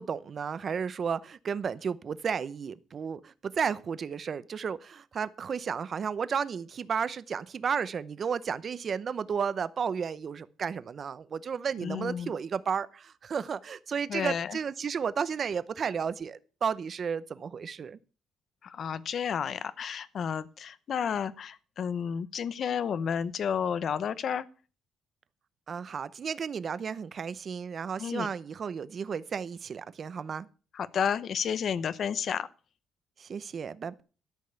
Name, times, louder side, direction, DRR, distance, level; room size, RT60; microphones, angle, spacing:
voice 1, 0.0-18.0 25.7-30.5 33.2-34.0, right 6 dB, 40° right, 0.7 m, -33 dB
voice 2, 11.8-12.3 14.1-14.6 18.6-24.4 28.0-28.3 30.7-32.5, left 7 dB, 50° left, 0.8 m, -31 dB
12.5 x 5.4 x 8.1 m
cardioid pair, 140°, 0 cm